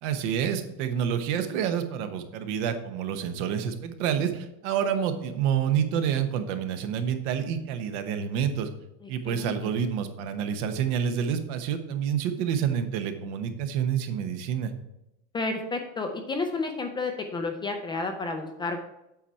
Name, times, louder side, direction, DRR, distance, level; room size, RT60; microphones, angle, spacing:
voice 1, 0.0-8.7 9.1-14.7, right 8 dB, 75° right, 8 dB, 1.0 m, -28 dB
voice 2, 9.2-9.7 15.3-18.8, left 3 dB, 15° left, 5 dB, 0.3 m, -31 dB
8.1 x 4.3 x 4.5 m, 0.88 s
cardioid pair, 160°, 35 cm